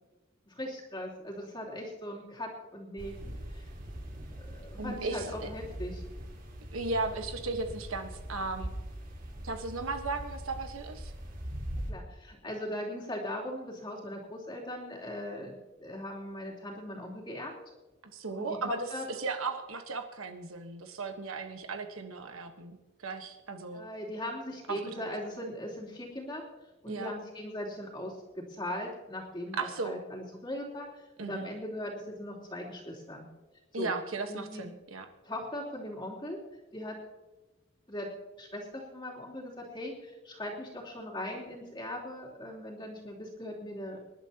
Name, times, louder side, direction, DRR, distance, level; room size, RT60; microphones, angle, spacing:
voice 1, 0.5-3.2 3.5-3.7 4.4-6.0 11.9-17.5 18.3-18.5 18.9-19.0 23.7-26.4 26.8-28.2 28.5-33.3 33.7-33.9 34.3-34.6 35.2-36.4 36.7-37.0 37.9-38.1 38.4-44.0, left 1 dB, 20° left, -3 dB, 3.1 m, -39 dB
sound 1, 3.0-11.9, equal, 40° right, 2.3 m, -42 dB
voice 2, 4.8-5.3 6.7-8.7 9.4-11.1 18.1-18.9 19.2-23.8 24.7-25.1 26.9-27.1 29.6-30.0 31.2-31.5 33.7-35.1, right 3 dB, 80° right, 6 dB, 1.3 m, -36 dB
26.0 x 11.5 x 2.9 m, 1.1 s
head